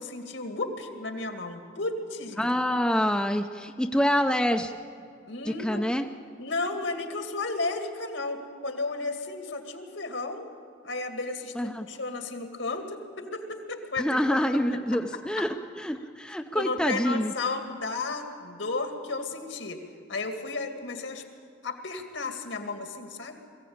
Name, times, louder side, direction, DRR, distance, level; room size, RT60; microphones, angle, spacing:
voice 1, 0.0-2.6 5.3-5.8 6.4-10.5 10.8-14.2 15.4-15.5 16.5-19.8 20.1-21.2 21.6-23.4, left 3 dB, 75° left, 5 dB, 2.2 m, -33 dB
voice 2, 2.4-4.7 5.5-6.0 11.6-11.9 14.0-17.3, equal, 5° left, 5 dB, 0.5 m, -26 dB
22.0 x 15.5 x 8.7 m, 2.3 s
head